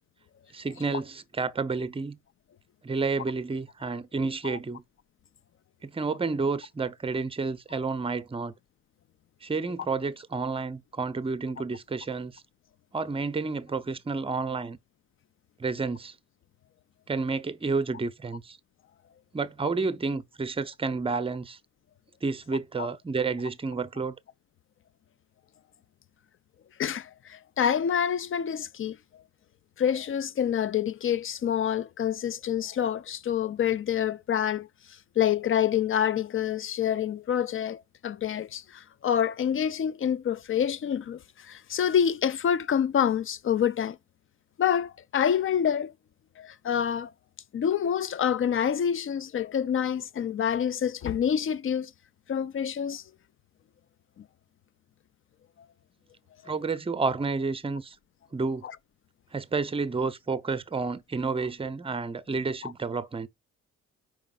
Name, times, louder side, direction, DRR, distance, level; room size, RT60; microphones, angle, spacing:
voice 1, 0.5-2.2 2.8-4.8 5.8-8.5 9.4-12.4 12.9-14.8 15.6-16.1 17.1-18.6 19.3-21.6 22.2-24.2 56.4-58.0 58.3-58.7 59.3-63.3, right 4 dB, 20° right, 0.7 m, -30 dB
voice 2, 26.8-29.0 29.8-34.7 35.2-44.0 44.6-45.9 46.4-47.1 47.5-51.9 52.3-53.0 54.2-54.3, left 9 dB, 45° left, 0.5 m, -27 dB
5.0 x 4.9 x 3.8 m
cardioid pair, 90°, 30 cm